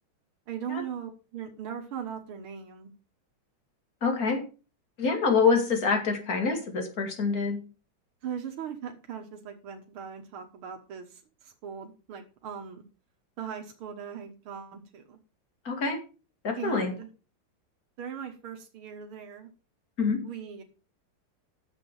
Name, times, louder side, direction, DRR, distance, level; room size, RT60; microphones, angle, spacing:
voice 1, 0.5-2.9 8.2-12.8 13.4-15.2 16.6-17.1 18.0-19.5 20.2-20.6, right 8 dB, 85° right, 3 dB, 2.2 m, -39 dB
voice 2, 4.0-4.4 5.0-7.6 15.7-16.0 16.4-16.9 20.0-20.2, left 5 dB, 45° left, 4 dB, 2.7 m, -26 dB
10.5 x 7.1 x 5.4 m, 0.34 s
omnidirectional pair, 2.3 m